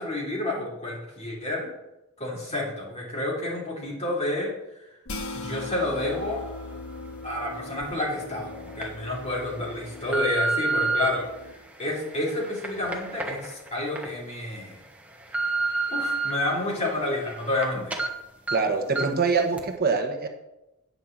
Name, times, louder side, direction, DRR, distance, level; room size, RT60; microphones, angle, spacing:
voice 1, 0.0-1.7 2.2-4.5 5.3-6.5 7.2-11.3 11.8-14.8 15.9-18.0, left 2 dB, 30° left, -3 dB, 3.1 m, -29 dB
sound 1, 5.1-11.5, left 2 dB, 85° left, 1.3 m, -40 dB
sound 2, 7.8-7.9 8.5-8.8 9.5-11.1 11.8-14.1 14.5-14.6 15.0-16.3 16.8-17.6 17.9-18.1 18.5-18.6 19.0-19.2 19.6-19.7, right 3 dB, 5° right, 1.3 m, -29 dB
voice 2, 18.5-20.3, right 4 dB, 50° right, 5 dB, 1.1 m, -24 dB
9.4 x 5.4 x 7.4 m, 0.92 s
head